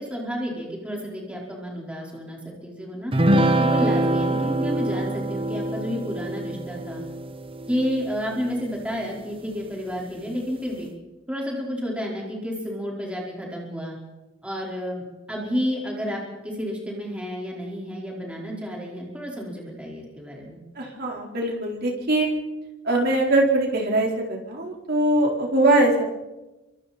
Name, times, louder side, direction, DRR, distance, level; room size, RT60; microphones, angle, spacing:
voice 1, 0.0-3.1 3.6-7.0 7.7-10.9 11.3-14.0 14.4-15.0 15.3-20.6, equal, 5° right, -3 dB, 4.7 m, -31 dB
sound 1, 3.1-8.8, right 1 dB, 25° right, 1.2 m, -24 dB
voice 2, 20.8-22.3 22.8-26.0, right 2 dB, 50° right, 0 dB, 4.5 m, -22 dB
28.0 x 24.5 x 4.4 m, 1.1 s
head